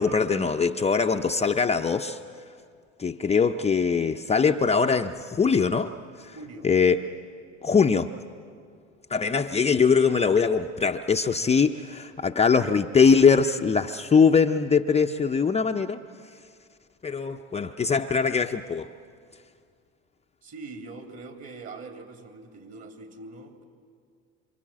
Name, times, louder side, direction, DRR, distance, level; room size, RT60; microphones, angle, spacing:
voice 1, 0.0-2.2 3.0-5.9 6.2-6.3 6.6-7.0 7.6-8.1 9.1-16.0 17.0-18.9, left 5 dB, 20° left, 4 dB, 0.7 m, -22 dB
voice 2, 6.3-7.0 20.4-23.6, right 3 dB, 45° right, 4 dB, 3.5 m, -43 dB
27.5 x 25.5 x 7.5 m, 2.2 s
hypercardioid pair, 85°, 34 cm